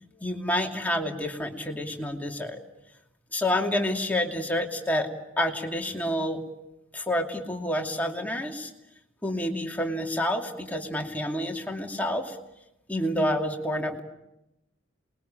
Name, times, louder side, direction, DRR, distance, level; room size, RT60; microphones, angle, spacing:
voice 1, 0.2-2.6 3.3-5.1 5.4-6.4 6.9-8.7 9.2-12.4 12.9-14.0, left 1 dB, 10° left, 1 dB, 2.6 m, -28 dB
28.0 x 21.5 x 8.9 m, 0.94 s
head